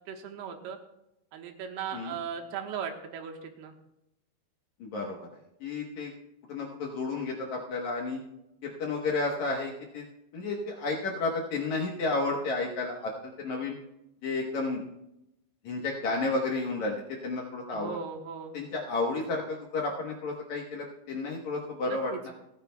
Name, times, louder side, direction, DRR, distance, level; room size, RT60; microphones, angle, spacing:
voice 1, 0.1-0.8 1.3-3.7 17.7-18.5 21.8-22.2, right 7 dB, 80° right, 4 dB, 3.2 m, -38 dB
voice 2, 4.8-5.2 5.6-6.1 6.5-8.2 8.6-10.1 10.3-13.8 14.2-14.8 15.6-18.0 18.5-22.3, left 3 dB, 65° left, 0 dB, 2.0 m, -32 dB
29.0 x 9.8 x 2.3 m, 0.85 s
omnidirectional pair, 4.6 m